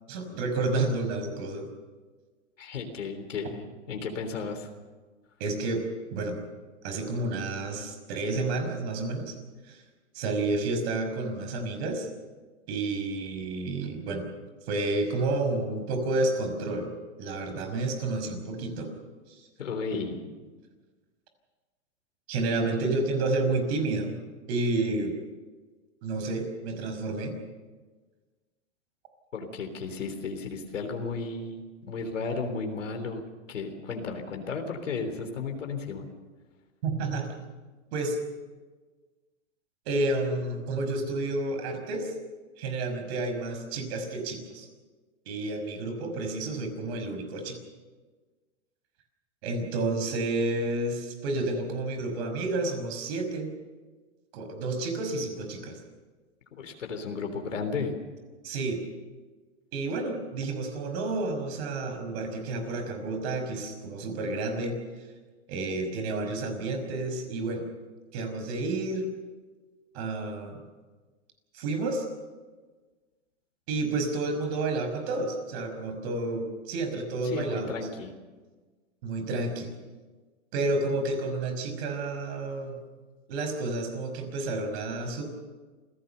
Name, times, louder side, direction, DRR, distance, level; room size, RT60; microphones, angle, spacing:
voice 1, 0.1-1.7 5.4-5.8 6.1-6.4 6.8-9.4 9.7-9.8 10.1-12.1 12.7-14.2 14.7-16.9 17.2-18.9 19.3-19.5 22.3-24.1 24.5-25.1 26.0-27.4 36.8-37.3 37.9-38.2 39.9-42.1 42.6-44.7 45.3-47.6 49.4-53.5 54.3-55.8 58.4-58.8 59.7-64.8 65.5-67.7 68.1-69.1 69.9-70.6 71.5-72.1 73.7-77.7 79.0-79.7 80.5-82.8 83.3-85.2, right 2 dB, 60° right, 6 dB, 5.7 m, -30 dB
voice 2, 2.6-4.7 19.6-20.2 29.3-33.2 33.5-36.0 56.6-57.9 77.2-78.1, left 4 dB, 85° left, 5 dB, 3.6 m, -34 dB
27.5 x 16.5 x 6.9 m, 1.3 s
hypercardioid pair, 115°, 36 cm